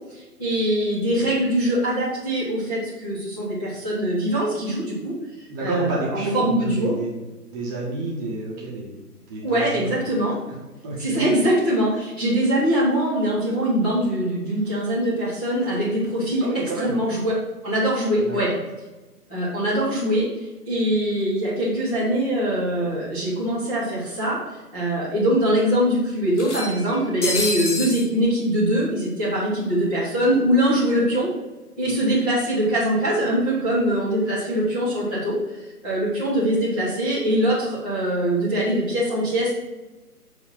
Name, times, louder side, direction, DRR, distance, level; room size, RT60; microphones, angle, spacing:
voice 1, 0.1-6.9 9.4-10.4 11.0-16.4 16.8-17.3 17.6-18.5 19.3-24.4 24.7-31.3 31.8-35.3 35.8-39.5, right 1 dB, 5° left, -15 dB, 0.7 m, -23 dB
voice 2, 5.5-7.1 7.5-8.9 9.3-10.1 10.5-10.6 10.8-11.2 16.4-16.9 18.2-18.6, right 2 dB, 15° right, -5 dB, 1.1 m, -29 dB
sound 1, 22.9-23.0 23.3-23.4 24.5-24.6 24.9-25.0 26.3-28.1, left 2 dB, 45° left, 1.7 m, -28 dB
7.1 x 4.4 x 5.7 m, 1.1 s
figure-of-eight pair, 140°, 47 cm